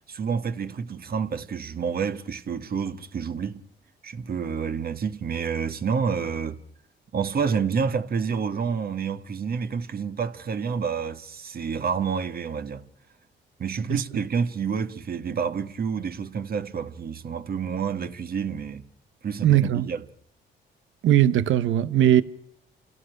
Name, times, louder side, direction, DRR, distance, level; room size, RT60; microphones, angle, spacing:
voice 1, 0.1-3.7 4.0-6.6 7.1-12.8 13.6-18.8 19.2-20.0, right 6 dB, 50° right, 1.9 m, -29 dB
voice 2, 19.4-19.9 21.0-22.2, right 11 dB, 80° right, 1.1 m, -19 dB
29.5 x 17.0 x 6.5 m
cardioid pair, 90°, 20 cm